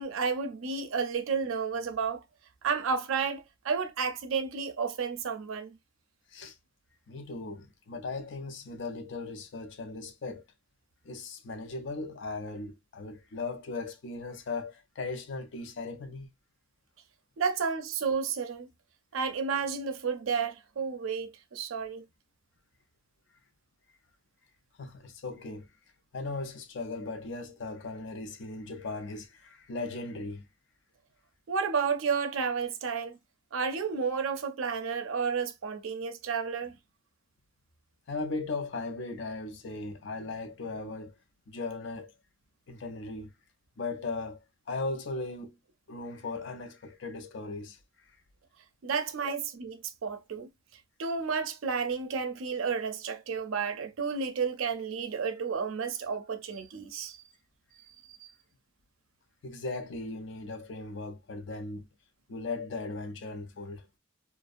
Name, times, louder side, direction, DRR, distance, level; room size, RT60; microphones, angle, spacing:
voice 1, 0.0-2.2 2.6-5.7 17.4-18.7 19.1-22.0 31.5-33.2 33.5-36.8 48.8-50.5 51.0-57.2 57.9-58.3, right 5 dB, 90° right, 0.5 m, -31 dB
voice 2, 7.1-10.4 11.0-16.3 24.8-25.7 26.1-30.5 38.1-41.2 41.5-42.1 42.7-43.3 43.8-45.6 45.9-47.8 49.2-49.3 59.4-61.9 62.3-63.9, left 3 dB, 60° left, 0.4 m, -38 dB
2.4 x 2.0 x 2.4 m
head